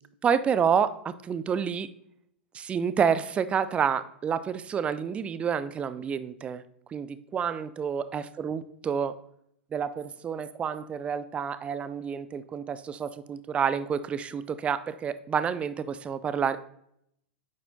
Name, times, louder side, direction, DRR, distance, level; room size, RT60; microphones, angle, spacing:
voice 1, 0.2-1.9 2.5-6.6 6.9-9.2 9.7-16.6, right 7 dB, 20° right, 14 dB, 0.4 m, -29 dB
9.5 x 4.3 x 2.7 m, 0.72 s
hypercardioid pair, 105°, 6 cm